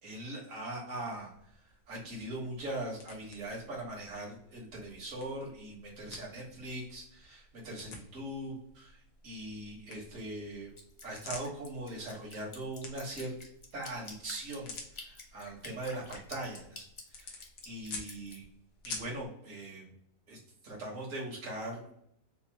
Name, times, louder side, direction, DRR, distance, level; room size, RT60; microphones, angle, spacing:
voice 1, 0.0-1.3 1.9-10.7 11.0-13.3 13.7-16.8 17.1-18.5 18.8-19.9 20.3-20.4 20.6-21.9, right 1 dB, 70° right, -4 dB, 1.8 m, -41 dB
sound 1, 1.1-19.3, left 3 dB, 90° left, 1.3 m, -51 dB
Drip, 10.8-18.4, left 3 dB, 35° left, 0.5 m, -49 dB
4.3 x 2.7 x 2.8 m, 0.70 s
omnidirectional pair, 1.4 m